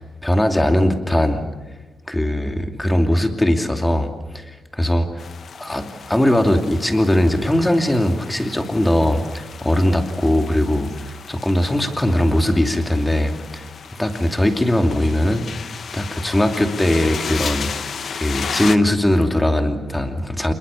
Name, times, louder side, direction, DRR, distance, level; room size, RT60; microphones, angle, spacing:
voice 1, 0.0-1.4 2.1-5.3 5.6-13.7 14.0-15.5 15.9-17.7 18.1-20.5, left 1 dB, 10° left, 5 dB, 2.7 m, -20 dB
sound 1, 5.2-18.8, left 6 dB, 55° left, 1.1 m, -34 dB
26.5 x 22.0 x 7.1 m, 1.2 s
cardioid pair, 105°, 0 cm